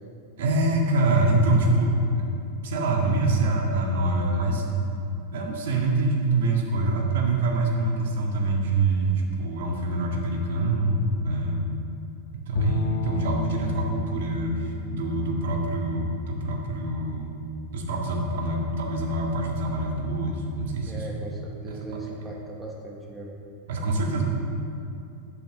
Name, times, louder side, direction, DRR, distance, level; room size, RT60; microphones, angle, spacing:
voice 1, 0.4-2.0 2.6-4.6 5.3-11.7 12.5-17.4 17.7-21.0 23.7-24.2, right 2 dB, 75° right, 0 dB, 1.7 m, -25 dB
Bowed string instrument, 12.5-16.8, left 1 dB, 65° left, 0.9 m, -32 dB
voice 2, 20.9-23.4, right 2 dB, 5° right, -2 dB, 1.2 m, -38 dB
10.5 x 5.9 x 6.8 m, 2.7 s
supercardioid pair, 155°, 0 cm